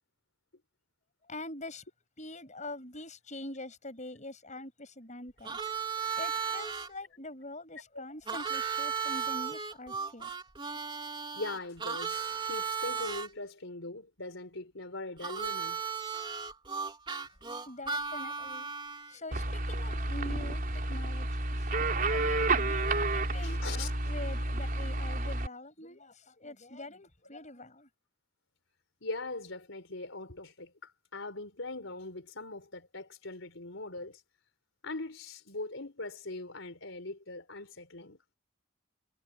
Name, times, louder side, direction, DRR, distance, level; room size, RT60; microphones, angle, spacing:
voice 1, 1.3-1.8 2.2-5.6 6.2-10.3 17.7-18.7 19.1-21.4 22.1-27.9, left 2 dB, 35° left, 7.6 m, -44 dB
Harmonica, 5.4-6.9 8.3-13.3 15.2-19.1, right 6 dB, 25° right, 3.6 m, -35 dB
voice 2, 11.3-15.8 23.4-23.9 29.0-34.2 34.8-38.2, left 2 dB, 70° left, 4.5 m, -41 dB
sound 1, 19.3-25.5, right 2 dB, 45° right, 4.2 m, -30 dB
head